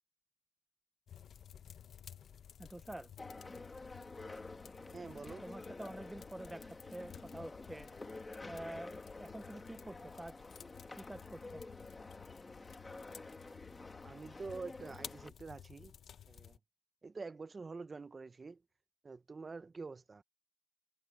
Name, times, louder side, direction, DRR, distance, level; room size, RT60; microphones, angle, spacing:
sound 1, 1.1-16.6, left 9 dB, 75° left, 1.0 m, -55 dB
voice 1, 2.6-3.1 5.4-7.9 8.5-10.4 11.0-11.6, right 1 dB, 10° right, 0.8 m, -48 dB
sound 2, 3.2-15.3, left 2 dB, 25° left, 2.0 m, -50 dB
voice 2, 4.9-5.4 14.0-15.9 16.3-16.6 17.0-18.6 19.0-20.2, right 4 dB, 40° right, 0.9 m, -46 dB
cardioid pair, 75°, 0 cm